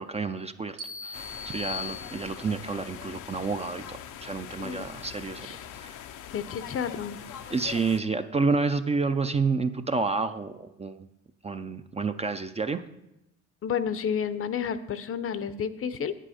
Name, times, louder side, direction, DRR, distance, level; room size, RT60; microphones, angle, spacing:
voice 1, 0.0-6.0 7.5-11.1 11.4-12.8, right 4 dB, 20° right, 9 dB, 0.4 m, -30 dB
sound 1, 0.8-2.7, left 5 dB, 90° right, 1.0 m, -39 dB
sound 2, 1.1-8.0, left 9 dB, 85° left, 0.7 m, -43 dB
voice 2, 6.3-7.2 13.6-16.2, left 7 dB, 45° left, 13 dB, 0.6 m, -31 dB
8.9 x 7.6 x 4.9 m, 0.90 s
cardioid pair, 90°, 30 cm